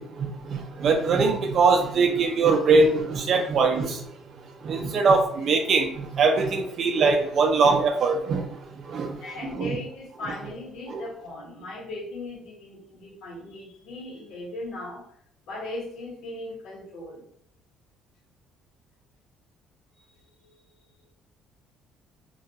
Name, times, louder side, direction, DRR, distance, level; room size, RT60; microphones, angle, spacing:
voice 1, 0.0-4.2 4.6-9.3 9.6-9.8 10.9-11.0, right 4 dB, 40° right, 0.3 m, -22 dB
voice 2, 9.2-15.1 15.5-17.2 19.9-20.0 20.4-20.5 21.0-21.1, left 2 dB, 65° left, 1.0 m, -38 dB
2.2 x 2.2 x 2.7 m
cardioid pair, 180°, 0 cm